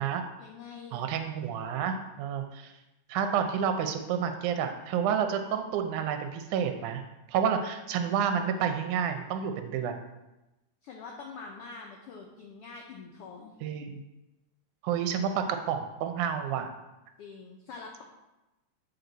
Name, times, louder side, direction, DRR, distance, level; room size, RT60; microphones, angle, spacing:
voice 1, 0.4-1.0 10.8-13.5 17.2-18.0, left 4 dB, 85° left, 0 dB, 1.3 m, -45 dB
voice 2, 0.9-2.7 3.1-7.0 7.3-9.9 13.6-14.0 14.8-16.7, right 7 dB, 80° right, 6 dB, 2.1 m, -29 dB
8.3 x 4.4 x 3.9 m, 1.0 s
omnidirectional pair, 3.5 m